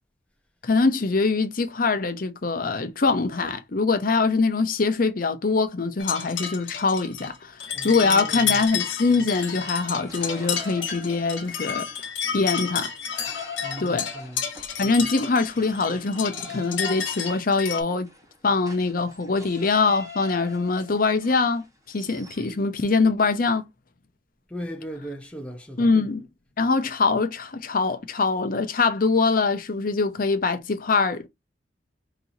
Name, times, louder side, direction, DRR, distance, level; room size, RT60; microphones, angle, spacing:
voice 1, 0.6-7.6 7.8-12.9 13.8-14.1 14.8-18.1 18.4-23.6 25.8-26.3 26.6-31.3, left 4 dB, 50° left, 0.7 m, -23 dB
sound 1, 6.0-17.8, left 7 dB, 75° left, 1.4 m, -31 dB
voice 2, 7.7-8.7 13.6-14.5 24.5-25.9, equal, 5° left, 0.7 m, -37 dB
sound 2, 9.3-11.9 12.3-22.5, left 2 dB, 20° right, 1.2 m, -43 dB
5.3 x 2.9 x 2.6 m
head